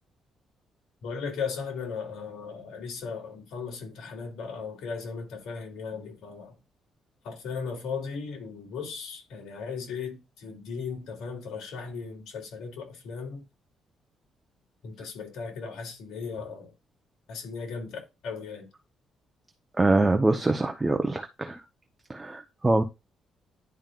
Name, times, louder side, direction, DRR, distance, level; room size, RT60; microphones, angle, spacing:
voice 1, 1.0-6.5 7.2-13.4 14.8-16.7 17.3-18.7, left 5 dB, 85° left, 2.9 m, -37 dB
voice 2, 19.8-21.6 22.1-22.8, right 2 dB, 15° right, 0.9 m, -24 dB
10.5 x 5.4 x 2.5 m
cardioid pair, 90°, 0 cm